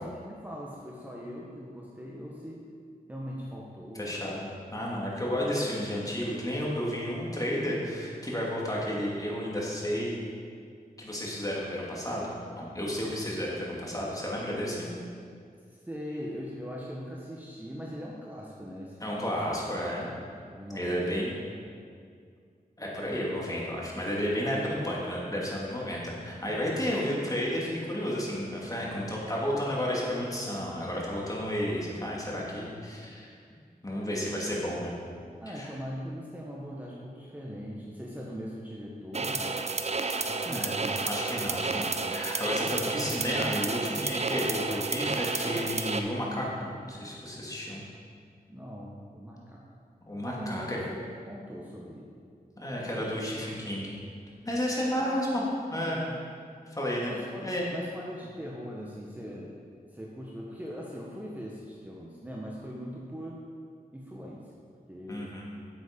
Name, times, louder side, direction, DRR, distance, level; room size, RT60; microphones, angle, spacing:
voice 1, 0.0-2.6 3.1-4.4 15.7-19.4 19.8-20.2 20.5-21.2 21.4-21.6 35.4-39.8 40.3-40.9 48.5-49.8 50.3-52.1 55.0-55.5 55.7-56.1 57.1-59.6 59.9-63.4 63.9-64.6 64.9-65.4, equal, 10° right, -4 dB, 1.2 m, -41 dB
voice 2, 3.9-10.2 11.0-14.9 19.0-20.1 20.7-21.3 22.8-33.3 33.8-34.9 35.5-35.7 40.5-40.7 41.1-47.8 50.0-50.8 52.6-54.0 54.4-55.4 55.7-56.1 56.7-57.1 57.4-57.6 65.1-65.5, equal, 20° left, -4 dB, 2.5 m, -32 dB
sound 1, 39.1-46.0, right 3 dB, 45° right, 0.7 m, -31 dB
8.1 x 8.0 x 5.3 m, 2.2 s
wide cardioid pair, 65°, 16 cm